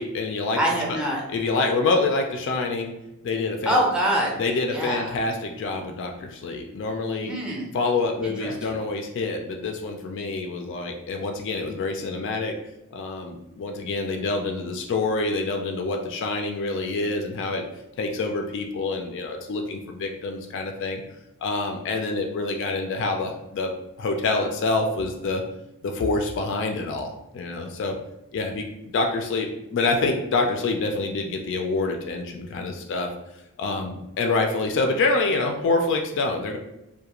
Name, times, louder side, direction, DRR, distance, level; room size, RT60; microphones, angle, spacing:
voice 1, 0.0-0.6 1.3-2.9 3.2-3.8 4.4-7.3 7.7-12.6 12.9-17.6 18.0-21.0 21.4-23.7 24.0-25.4 25.8-28.0 28.3-28.7 28.9-33.1 33.6-36.6, left 3 dB, 55° left, 3 dB, 0.3 m, -26 dB
voice 2, 0.6-1.2 3.7-4.4 4.7-5.1 7.2-7.8 8.2-8.8, equal, 5° right, -3 dB, 0.5 m, -25 dB
2.4 x 2.2 x 2.9 m, 0.89 s
head